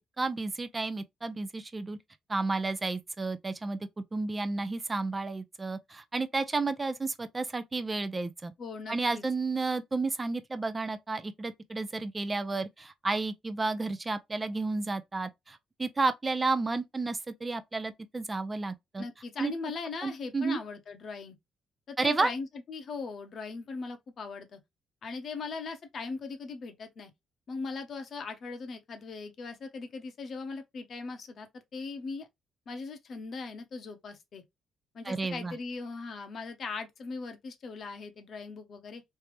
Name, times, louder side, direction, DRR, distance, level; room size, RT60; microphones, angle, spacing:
voice 1, 0.2-2.0 2.3-3.8 4.1-8.5 8.9-19.0 19.4-19.5 20.0-20.6 22.0-22.3 35.0-35.5, right 3 dB, 25° right, 0.5 m, -32 dB
voice 2, 8.6-9.2 19.0-21.4 21.9-24.6 25.0-27.1 27.5-32.3 32.7-34.4 34.9-39.0, left 4 dB, 55° left, 0.9 m, -39 dB
3.3 x 2.8 x 3.3 m
cardioid pair, 90°, 0 cm